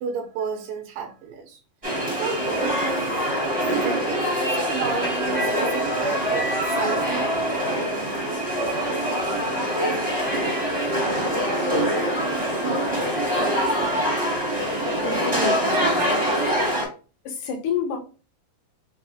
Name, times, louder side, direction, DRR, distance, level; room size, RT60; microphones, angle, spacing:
voice 1, 0.0-1.6 2.1-3.2 3.8-7.4, right 6 dB, 85° right, 2.3 m, -32 dB
sound 1, 1.8-16.9, equal, 45° right, 0.4 m, -24 dB
voice 2, 14.9-16.2 17.3-18.0, left 5 dB, 75° left, 2.2 m, -29 dB
6.0 x 2.0 x 2.7 m
omnidirectional pair, 4.0 m